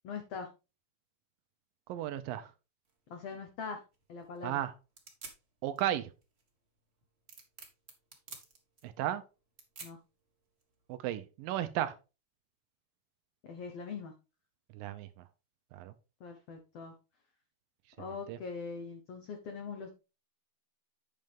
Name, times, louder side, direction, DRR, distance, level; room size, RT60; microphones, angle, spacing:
voice 1, 0.0-0.5 3.1-3.8 4.1-4.6 9.8-10.0 13.4-14.1 16.2-16.9 18.0-19.9, left 5 dB, 90° left, 5 dB, 1.3 m, -42 dB
voice 2, 1.9-2.5 4.4-4.7 5.6-6.1 8.8-9.2 10.9-12.0 14.7-15.3 15.7-15.9 18.3-18.4, right 12 dB, 80° right, 11 dB, 2.2 m, -34 dB
sound 1, 2.8-10.9, right 4 dB, 45° right, 0.7 m, -54 dB
9.1 x 6.5 x 3.5 m, 0.30 s
omnidirectional pair, 4.3 m